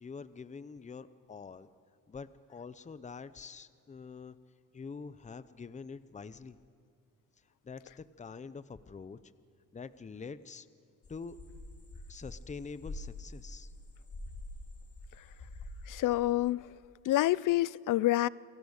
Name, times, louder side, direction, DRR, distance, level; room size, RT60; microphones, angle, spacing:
voice 1, 0.0-1.7 2.1-4.4 4.7-6.6 7.6-9.2 9.7-10.7 11.1-11.4 12.1-13.7, left 5 dB, 20° left, 0.7 m, -45 dB
sound 1, 11.0-14.6 14.9-16.1, left 2 dB, 40° left, 3.7 m, -45 dB
voice 2, 15.9-16.7 17.1-18.3, left 16 dB, 60° left, 0.5 m, -27 dB
28.0 x 18.5 x 6.5 m
cardioid pair, 100°, 35 cm